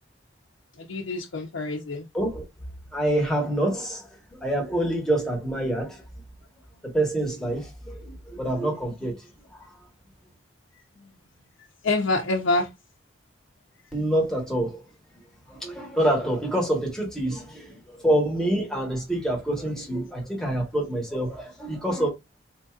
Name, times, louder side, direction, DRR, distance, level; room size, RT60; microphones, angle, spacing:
voice 1, 0.8-2.1 11.0-11.1 11.8-12.7, left 2 dB, 85° left, 0.6 m, -26 dB
voice 2, 2.1-2.4 2.9-6.0 6.9-9.3 13.9-14.8 15.5-22.1, right 1 dB, 5° left, 1.1 m, -26 dB
4.4 x 2.6 x 2.3 m
head